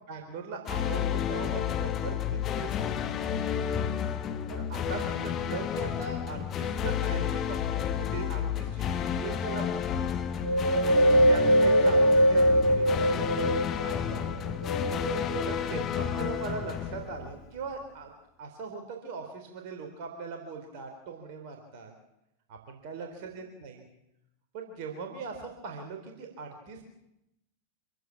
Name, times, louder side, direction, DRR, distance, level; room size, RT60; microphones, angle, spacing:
voice 1, 0.1-2.2 2.6-3.1 4.5-10.3 11.1-14.5 15.5-18.1 18.4-21.9 22.5-23.8 24.5-26.8, right 5 dB, 45° right, 3 dB, 3.9 m, -40 dB
sound 1, 0.7-17.7, left 9 dB, 30° left, 1.6 m, -31 dB
Wind, 10.4-14.0 14.5-15.8 16.3-16.4, right 1 dB, 75° right, 1.1 m, -23 dB
26.5 x 15.5 x 7.3 m, 0.85 s
figure-of-eight pair, 90°, 0 cm